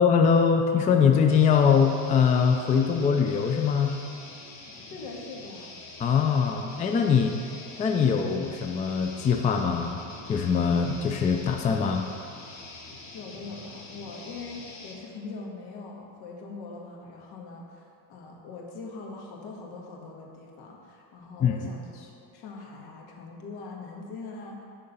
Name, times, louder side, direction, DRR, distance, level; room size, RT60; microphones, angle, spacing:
voice 1, 0.0-3.9 6.0-7.4 7.8-10.0 10.3-12.1 21.4-21.7, left 6 dB, 20° left, 4 dB, 0.3 m, -22 dB
sound 1, 1.3-15.0, left 2 dB, 45° left, 1.5 m, -45 dB
voice 2, 4.9-5.8 13.1-24.6, left 3 dB, 65° left, -1 dB, 1.7 m, -42 dB
11.5 x 3.8 x 5.5 m, 2.5 s
cardioid pair, 130°, 40 cm